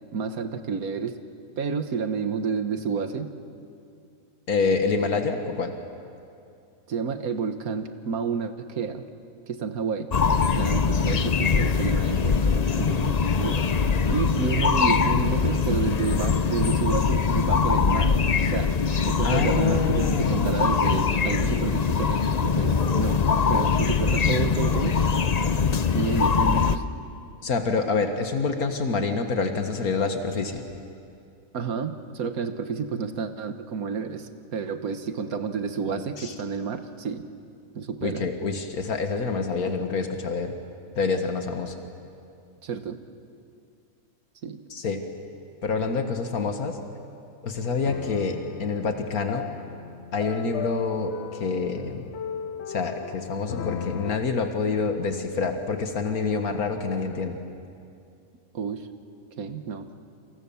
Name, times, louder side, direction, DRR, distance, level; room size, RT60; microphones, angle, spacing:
voice 1, 0.1-1.2 1.6-3.3 6.9-9.0 9.5-10.1 10.6-13.6 14.1-18.2 18.5-18.8 19.0-23.2 23.5-25.0 25.9-26.8 31.5-37.2 37.8-38.3 42.6-43.0 44.4-44.6 58.5-58.9 59.4-59.9, right 5 dB, 75° right, 9 dB, 1.8 m, -30 dB
voice 2, 4.5-5.7 19.2-20.5 27.4-30.6 35.9-36.3 38.0-40.6 41.0-41.8 44.7-45.0 45.6-46.8 47.4-49.5 50.1-52.0 52.7-57.4, left 4 dB, 80° left, 6 dB, 2.0 m, -27 dB
sound 1, 10.1-26.8, left 5 dB, 40° left, 0.6 m, -22 dB
sound 2, 46.7-47.1 47.9-54.2, left 7 dB, 55° left, 1.0 m, -37 dB
28.0 x 28.0 x 7.2 m, 2.5 s
omnidirectional pair, 1.5 m